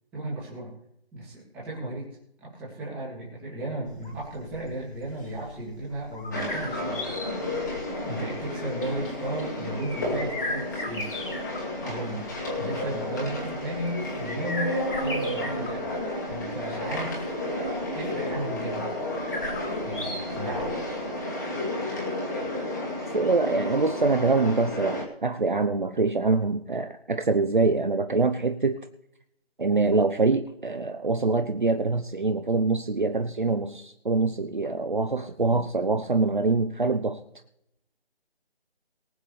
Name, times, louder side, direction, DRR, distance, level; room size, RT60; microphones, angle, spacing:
voice 1, 0.1-0.7 1.1-2.1 2.4-7.2 8.0-11.1 11.8-12.3 12.6-14.7 15.0-15.9 16.3-17.2 17.9-18.9 19.8-20.7, right 1 dB, 5° right, -8 dB, 2.2 m, -34 dB
sound 1, 3.9-21.1, left 1 dB, 55° left, 3.0 m, -38 dB
sound 2, 6.3-25.0, left 1 dB, 15° left, 2.2 m, -32 dB
voice 2, 23.1-28.8 29.6-37.2, right 3 dB, 50° right, 7 dB, 1.0 m, -24 dB
23.0 x 7.8 x 3.3 m, 0.77 s
figure-of-eight pair, 170°, 32 cm